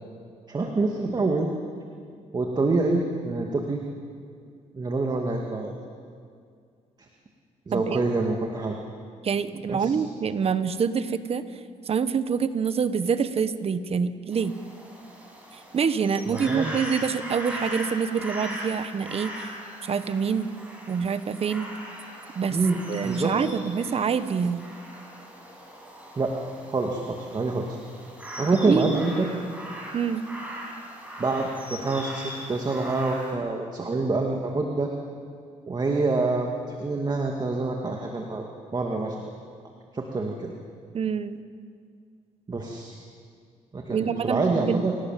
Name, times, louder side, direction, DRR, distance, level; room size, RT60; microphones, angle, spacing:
voice 1, 0.5-1.5 2.3-3.8 4.7-5.9 7.7-8.8 9.7-10.0 16.3-16.7 22.5-23.3 26.2-26.3 26.7-27.8 28.4-29.3 31.2-34.9 35.7-38.5 38.7-39.3 39.9-40.5 42.5-42.9 43.7-44.9, right 3 dB, 35° right, 1 dB, 2.3 m, -26 dB
voice 2, 7.7-8.0 9.2-11.4 11.8-14.5 15.5-19.5 19.8-20.5 20.9-21.7 22.3-22.6 22.9-24.7 28.5-29.0 29.9-30.3 40.9-41.4 43.9-44.9, right 6 dB, 50° right, 12 dB, 1.2 m, -26 dB
sound 1, 14.3-33.3, equal, 10° right, 7.3 m, -40 dB
26.5 x 17.5 x 7.6 m, 2.2 s
cardioid pair, 90°, 13 cm